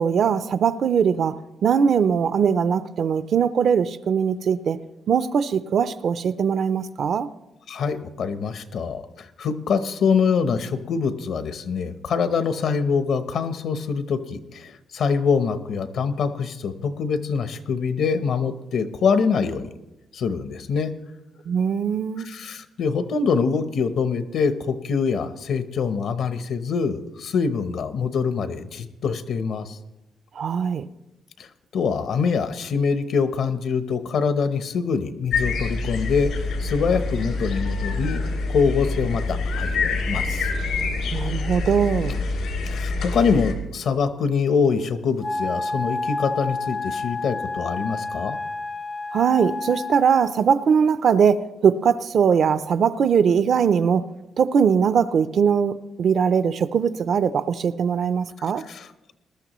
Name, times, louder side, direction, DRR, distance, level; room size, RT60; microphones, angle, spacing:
voice 1, 0.0-4.8 5.1-7.3 21.5-22.3 30.4-30.9 41.1-42.2 49.1-54.1 54.4-58.6, right 7 dB, 50° right, 0.4 m, -21 dB
voice 2, 7.7-19.7 20.1-20.9 22.2-29.8 31.4-31.5 31.7-38.2 38.5-40.5 42.7-48.4 58.4-59.1, left 5 dB, 65° left, 0.8 m, -24 dB
sound 1, 35.3-43.5, left 3 dB, 80° left, 2.4 m, -26 dB
Wind instrument woodwind instrument, 45.2-50.4, left 3 dB, 20° left, 0.4 m, -30 dB
20.0 x 12.5 x 3.0 m
cardioid pair, 160°, 0 cm